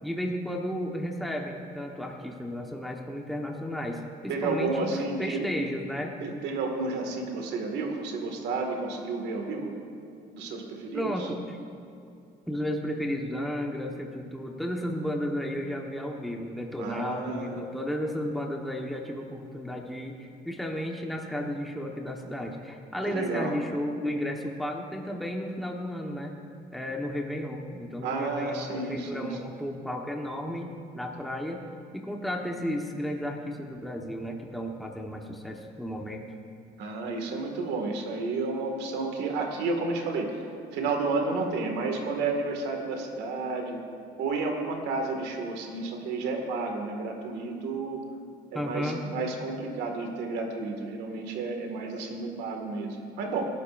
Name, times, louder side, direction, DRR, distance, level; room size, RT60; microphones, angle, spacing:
voice 1, 0.0-6.2 10.9-11.6 12.5-26.4 26.7-31.6 31.9-36.2 48.5-49.0, equal, ahead, 0 dB, 1.2 m, -33 dB
voice 2, 4.3-5.5 6.2-9.8 10.3-11.3 16.8-17.6 23.1-23.5 28.0-29.3 36.8-40.4 40.7-43.8 44.2-48.0 48.5-53.5, right 3 dB, 90° right, 2 dB, 2.0 m, -31 dB
26.0 x 12.0 x 2.6 m, 2.5 s
cardioid pair, 110°, 17 cm